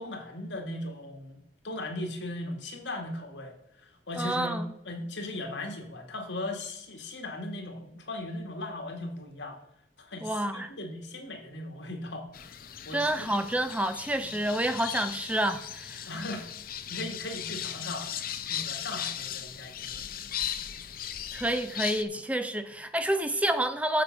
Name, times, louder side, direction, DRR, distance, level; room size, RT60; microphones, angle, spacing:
voice 1, 0.0-1.4 1.6-3.6 3.8-9.6 10.0-12.5 12.9-13.4 14.2-14.3 16.1-16.5 16.9-20.4, left 1 dB, 80° left, 1.9 m, -38 dB
voice 2, 4.2-4.7 10.2-10.7 12.9-16.1 21.3-24.0, right 1 dB, 10° right, 0.5 m, -29 dB
sound 1, 12.3-22.0, left 9 dB, 50° left, 0.6 m, -37 dB
7.6 x 7.2 x 5.2 m
head